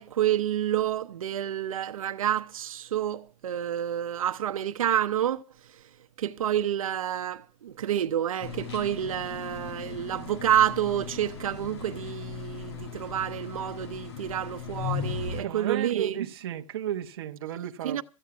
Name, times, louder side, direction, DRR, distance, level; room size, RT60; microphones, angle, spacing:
voice 1, 0.0-5.4 6.2-16.2 17.8-18.0, right 11 dB, 85° right, 0.8 m, -28 dB
sound 1, 8.4-15.4, left 7 dB, 50° left, 2.2 m, -37 dB
voice 2, 15.4-18.0, right 11 dB, 45° right, 1.1 m, -33 dB
14.5 x 9.1 x 7.0 m
supercardioid pair, 180°, 17 cm